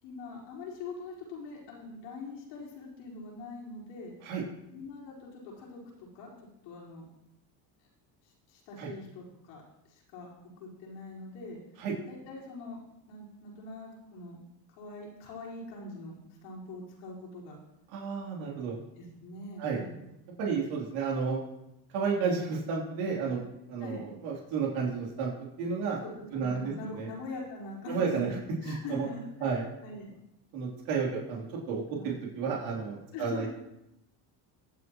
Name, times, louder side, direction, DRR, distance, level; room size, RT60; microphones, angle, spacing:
voice 1, 0.0-4.1 4.7-6.3 6.6-7.1 8.2-9.6 9.9-10.3 10.6-11.6 12.1-12.8 13.1-14.4 14.7-17.6 19.0-19.9 23.2-23.3 23.8-24.0 26.0-29.2 29.8-30.1 31.9-32.1 33.1-33.5, left 3 dB, 80° left, -4 dB, 4.8 m, -43 dB
voice 2, 17.9-18.7 19.6-19.8 20.4-21.4 21.9-23.4 23.7-25.3 25.6-26.0 26.3-27.1 27.9-28.3 28.6-29.1 29.4-29.6 30.5-33.5, right 5 dB, 80° right, -3 dB, 3.3 m, -32 dB
22.5 x 8.0 x 3.0 m, 0.86 s
supercardioid pair, 90°, 50 cm